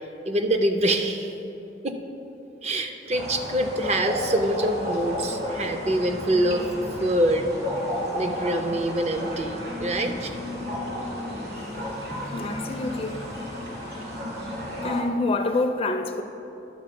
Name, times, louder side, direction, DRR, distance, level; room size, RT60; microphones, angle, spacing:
voice 1, 0.3-1.3 1.8-2.0 2.6-6.7 7.0-7.5 8.1-10.7, right 1 dB, 35° right, 6 dB, 0.5 m, -25 dB
sound 1, 3.1-15.0, equal, 50° right, 2.1 m, -32 dB
voice 2, 12.1-13.2 14.8-16.2, left 2 dB, 30° left, 7 dB, 0.4 m, -27 dB
11.0 x 4.1 x 6.8 m, 2.9 s
head